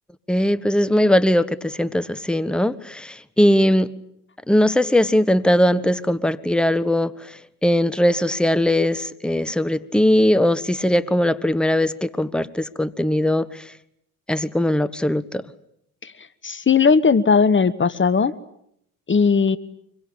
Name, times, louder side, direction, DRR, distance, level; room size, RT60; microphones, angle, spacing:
voice 1, 0.3-3.9 4.5-13.7 14.3-15.4, left 1 dB, ahead, 15 dB, 1.2 m, -20 dB
voice 2, 16.4-18.3 19.1-19.6, left 5 dB, 25° left, 16 dB, 1.2 m, -17 dB
25.0 x 23.0 x 8.8 m, 0.74 s
hypercardioid pair, 60°, 46 cm